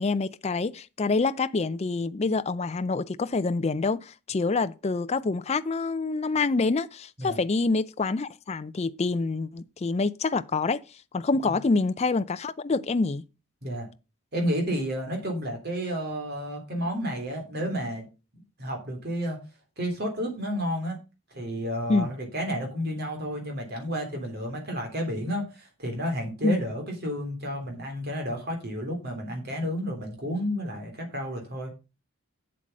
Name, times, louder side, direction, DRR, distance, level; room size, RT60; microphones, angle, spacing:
voice 1, 0.0-10.8 11.1-13.2 21.9-22.1 26.4-26.6, left 3 dB, 30° left, 0.4 m, -26 dB
voice 2, 14.3-18.0 18.6-19.4 19.8-21.0 21.3-31.7, equal, 45° right, 3.2 m, -31 dB
7.7 x 7.5 x 5.2 m
head